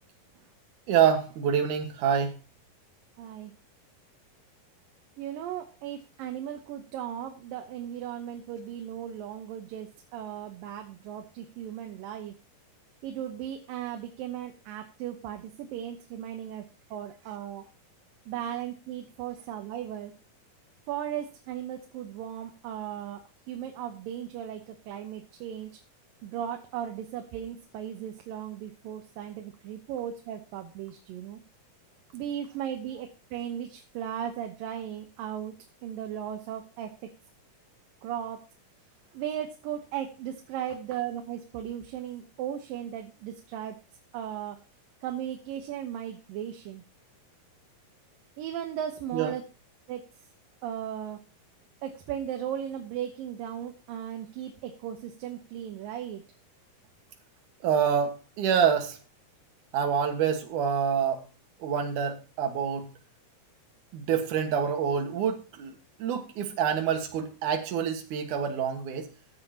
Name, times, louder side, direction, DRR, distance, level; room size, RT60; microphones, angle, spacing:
voice 1, 0.9-2.4 49.1-49.3 57.6-59.0 59.7-61.2 61.6-62.9 63.9-65.7 66.0-69.1, right 7 dB, 70° right, 5 dB, 2.9 m, -26 dB
voice 2, 3.2-3.5 5.2-12.3 13.0-16.6 16.9-17.6 18.3-20.1 20.9-23.2 23.5-25.7 26.2-31.4 32.1-35.5 35.8-36.9 38.0-38.4 39.1-43.8 44.1-44.6 45.0-46.8 48.4-49.4 49.9-50.1 50.6-51.2 51.8-56.2, right 10 dB, 85° right, 4 dB, 2.7 m, -36 dB
15.0 x 9.2 x 2.9 m, 0.32 s
omnidirectional pair, 3.9 m